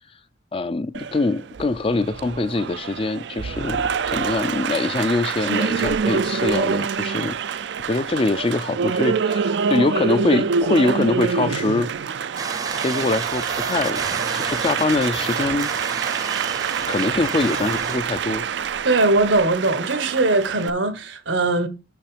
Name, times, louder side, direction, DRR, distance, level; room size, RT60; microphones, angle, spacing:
voice 1, 0.5-7.4 7.9-11.9 12.8-15.7 16.9-18.4, left 2 dB, 30° left, 0.5 m, -23 dB
Applause, 0.9-20.7, right 6 dB, 70° right, 0.4 m, -26 dB
sound 1, 12.4-18.0, right 4 dB, 20° right, 0.6 m, -31 dB
voice 2, 18.8-21.7, right 2 dB, 85° right, 1.4 m, -20 dB
6.2 x 5.7 x 5.0 m
head